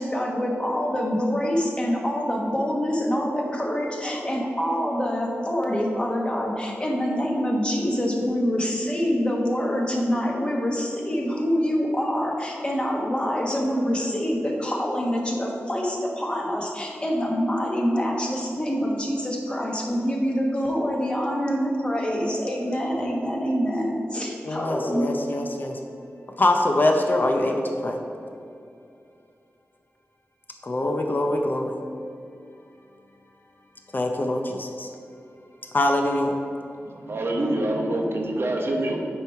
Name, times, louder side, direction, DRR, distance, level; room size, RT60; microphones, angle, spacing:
voice 1, 0.0-25.1, equal, 20° left, -1 dB, 1.2 m, -25 dB
voice 2, 24.5-25.8 26.4-27.6 27.8-28.0 30.6-31.7 33.9-34.9 35.7-36.3, left 1 dB, 45° left, 3 dB, 0.7 m, -23 dB
voice 3, 36.8-39.0, right 1 dB, 60° right, 0 dB, 0.9 m, -26 dB
8.9 x 3.1 x 5.6 m, 2.5 s
wide cardioid pair, 70°, 5 cm